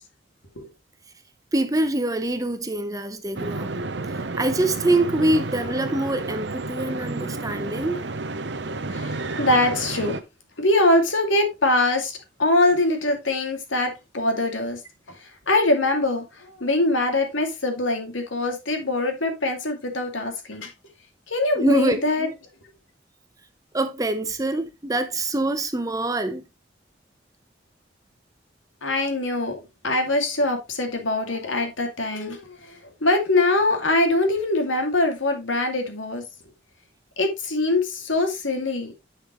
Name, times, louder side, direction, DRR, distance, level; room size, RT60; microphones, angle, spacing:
voice 1, 1.5-3.7 4.3-8.0 21.6-22.1 23.7-26.4, right 1 dB, 20° right, 0.8 m, -24 dB
sound 1, 3.4-10.2, right 3 dB, 65° right, 0.8 m, -31 dB
voice 2, 8.9-10.2 10.6-14.8 15.1-20.7 21.3-22.3 28.8-36.2 37.2-38.9, left 2 dB, 85° left, 2.5 m, -23 dB
10.0 x 5.7 x 3.1 m
head